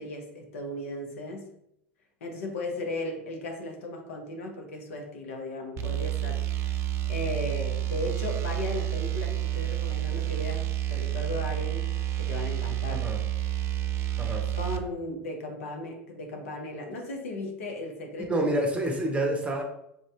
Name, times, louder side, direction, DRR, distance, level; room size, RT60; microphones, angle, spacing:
voice 1, 0.0-1.5 2.2-6.4 7.1-13.1 14.0-14.1 14.5-18.5, left 2 dB, 75° left, 2 dB, 0.8 m, -36 dB
sound 1, 5.8-14.8, right 13 dB, 40° right, 0.4 m, -29 dB
voice 2, 18.3-19.6, right 1 dB, 15° right, 2 dB, 0.9 m, -28 dB
3.6 x 2.6 x 3.3 m, 0.78 s
hypercardioid pair, 85°, 8 cm